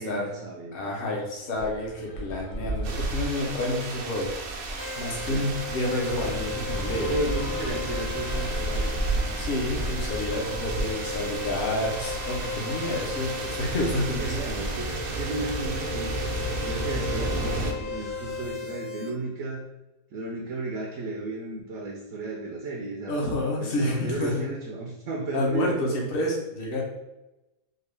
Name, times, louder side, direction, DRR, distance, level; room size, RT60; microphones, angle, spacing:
voice 1, 0.0-0.8 5.2-5.6 7.1-9.0 14.0-16.1 16.7-19.7 20.1-23.2 23.6-26.1, right 2 dB, 70° right, -1 dB, 0.9 m, -34 dB
voice 2, 0.7-4.3 5.0-7.2 9.4-14.3 23.1-24.4 25.3-26.8, left 1 dB, 45° left, -3 dB, 1.0 m, -29 dB
sound 1, 1.5-18.5, right 1 dB, 70° left, 1.0 m, -36 dB
sound 2, 2.8-17.7, right 2 dB, 90° right, 1.1 m, -33 dB
sound 3, 4.8-19.1, left 4 dB, 10° left, 0.4 m, -37 dB
3.7 x 2.5 x 3.2 m, 0.98 s
omnidirectional pair, 1.5 m